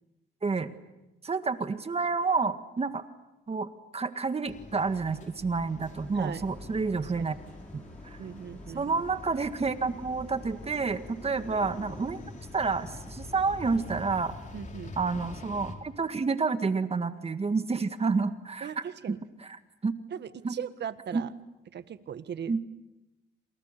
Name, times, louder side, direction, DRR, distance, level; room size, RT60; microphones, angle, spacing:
voice 1, 0.4-0.7 1.2-3.0 3.5-7.4 7.7-8.2 8.7-12.2 12.5-14.3 15.0-18.7 19.1-19.2 19.8-19.9 20.4-20.6 21.1-21.2 22.5-22.6, right 4 dB, 30° right, 9 dB, 1.8 m, -29 dB
sound 1, 4.5-15.7, left 3 dB, 40° left, 4.3 m, -45 dB
sound 2, 5.8-13.6, right 1 dB, 5° left, 6.8 m, -52 dB
voice 2, 6.1-6.4 7.0-7.3 8.2-9.0 14.5-15.0 18.6-19.2 20.1-21.3 21.7-22.5, right 8 dB, 60° right, 12 dB, 1.6 m, -39 dB
29.0 x 27.5 x 6.8 m, 1.0 s
cardioid pair, 90°, 20 cm